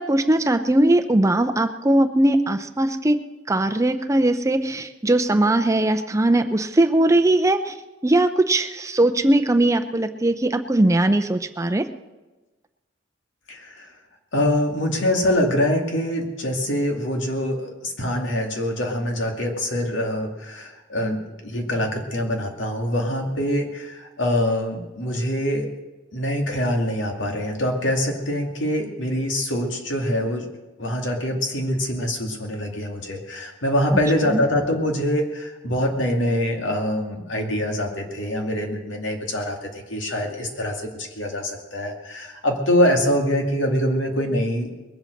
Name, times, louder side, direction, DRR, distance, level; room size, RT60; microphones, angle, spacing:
voice 1, 0.0-3.2 3.5-7.8 8.0-11.9 34.3-34.4, right 1 dB, 15° right, 8 dB, 0.6 m, -20 dB
voice 2, 13.5-13.9 14.3-25.7 26.1-30.5 30.8-44.7, left 1 dB, 85° left, 2 dB, 2.4 m, -24 dB
21.0 x 8.0 x 6.5 m, 1.1 s
head